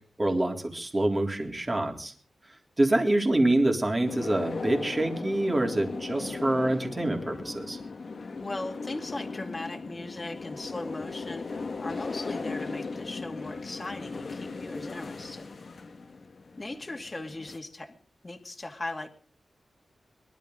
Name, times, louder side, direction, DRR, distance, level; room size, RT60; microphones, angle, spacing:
voice 1, 0.2-2.1 2.8-7.8, right 1 dB, 25° right, 2 dB, 3.6 m, -26 dB
sound 1, 4.0-17.6, left 4 dB, 60° left, 1.8 m, -37 dB
voice 2, 8.4-15.5 16.6-18.0 18.2-19.1, left 2 dB, 30° left, 4 dB, 2.4 m, -38 dB
23.0 x 12.5 x 3.9 m, 0.44 s
wide cardioid pair, 95°, 0 cm